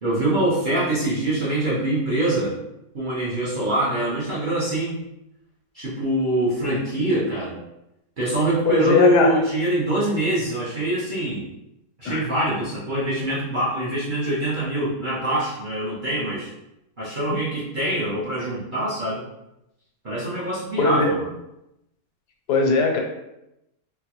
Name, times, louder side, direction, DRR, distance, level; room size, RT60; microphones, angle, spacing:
voice 1, 0.0-2.6 2.9-5.0 5.7-7.6 8.2-11.5 12.0-16.5 17.0-19.2 20.0-21.3, right 1 dB, 45° right, -8 dB, 0.6 m, -24 dB
voice 2, 8.7-9.3 12.0-12.3 20.8-21.1 22.5-23.0, left 4 dB, 85° left, 2 dB, 1.2 m, -19 dB
3.9 x 2.2 x 2.9 m, 0.88 s
omnidirectional pair, 1.7 m